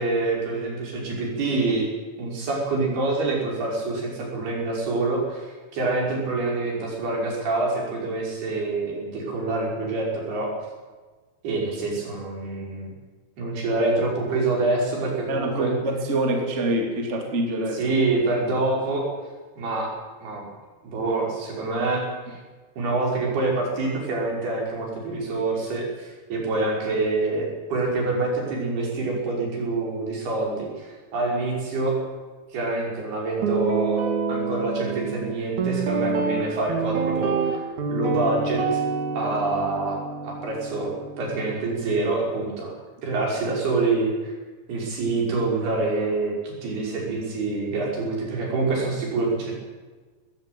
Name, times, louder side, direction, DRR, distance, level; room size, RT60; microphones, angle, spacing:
voice 1, 0.0-1.9 2.2-10.5 11.4-12.9 13.4-15.7 17.7-19.1 19.6-19.9 20.2-20.5 20.8-22.4 22.8-32.0 32.5-38.8 39.1-40.0 40.2-42.8 43.0-44.3 44.7-49.5, right 3 dB, 70° right, -1 dB, 7.6 m, -26 dB
voice 2, 15.3-18.0, right 1 dB, 20° right, 3 dB, 2.6 m, -25 dB
Guitar, 33.4-41.6, right 5 dB, 50° right, 3.3 m, -27 dB
20.0 x 16.0 x 9.3 m, 1.3 s
omnidirectional pair, 4.7 m